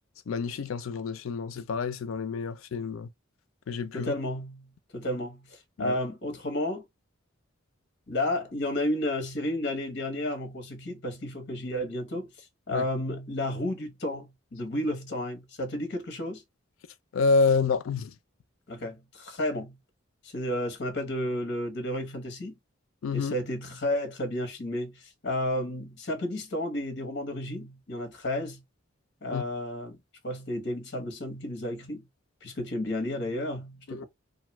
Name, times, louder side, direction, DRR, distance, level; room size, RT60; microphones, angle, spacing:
voice 1, 0.3-3.1 3.7-4.1 5.8-6.0 12.7-12.8 17.1-18.1 23.0-23.3 29.3-29.4 33.9-34.0, left 4 dB, 80° left, 0.4 m, -28 dB
voice 2, 3.9-6.8 8.1-16.4 18.7-19.8 20.2-22.5 23.1-28.6 29.2-30.0 30.2-32.0 32.4-34.0, left 1 dB, 55° left, 0.9 m, -32 dB
2.5 x 2.3 x 2.9 m
head